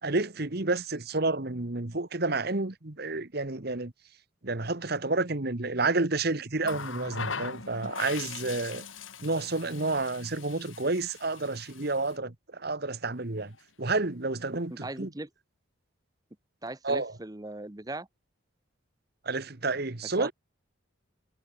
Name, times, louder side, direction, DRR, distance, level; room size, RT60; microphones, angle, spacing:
voice 1, 0.0-3.9 4.4-8.8 9.2-15.1 16.8-17.1 19.2-20.3, right 3 dB, 50° right, 1.4 m, -30 dB
Water tap faucet, 6.6-12.2 13.4-13.6, left 5 dB, 75° left, 2.2 m, -40 dB
voice 2, 14.7-15.3 16.6-18.1 20.0-20.3, right 2 dB, 20° right, 0.9 m, -38 dB
head